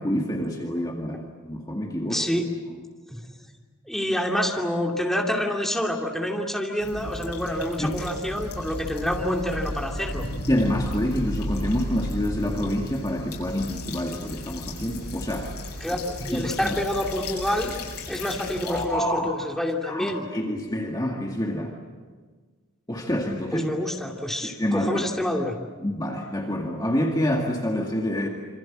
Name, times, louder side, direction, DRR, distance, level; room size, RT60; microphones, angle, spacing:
voice 1, 0.0-2.3 2.7-2.8 7.8-8.2 10.5-15.5 16.3-16.7 18.6-19.3 19.8-21.7 22.9-23.7 24.4-25.0 25.8-28.3, equal, 15° left, 0 dB, 2.1 m, -27 dB
voice 2, 2.1-2.5 3.1-3.3 3.8-10.3 15.8-17.8 18.1-20.2 23.5-25.6, left 1 dB, ahead, 0 dB, 2.6 m, -27 dB
sound 1, 6.8-18.8, left 1 dB, 90° left, 8.0 m, -34 dB
27.5 x 26.0 x 7.6 m, 1.4 s
head